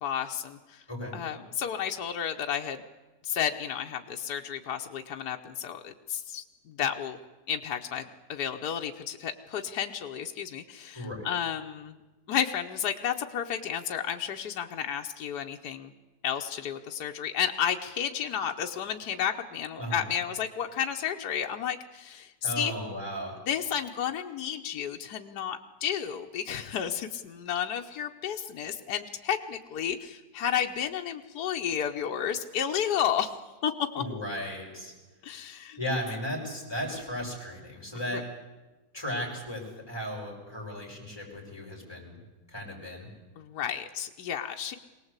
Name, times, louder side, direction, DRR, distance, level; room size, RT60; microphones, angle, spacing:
voice 1, 0.0-0.8 1.1-2.8 3.2-7.2 7.5-12.0 12.3-15.9 16.2-22.7 23.5-33.4 33.6-34.0 35.2-35.8 38.1-38.2 43.4-44.7, left 9 dB, 75° left, 3 dB, 1.5 m, -32 dB
voice 2, 10.9-11.3 19.8-20.0 22.4-23.4 34.0-34.9 35.8-38.3 38.9-42.2 42.5-43.1, equal, 15° left, -1 dB, 5.7 m, -35 dB
23.5 x 18.0 x 8.1 m, 1.2 s
omnidirectional pair, 1.7 m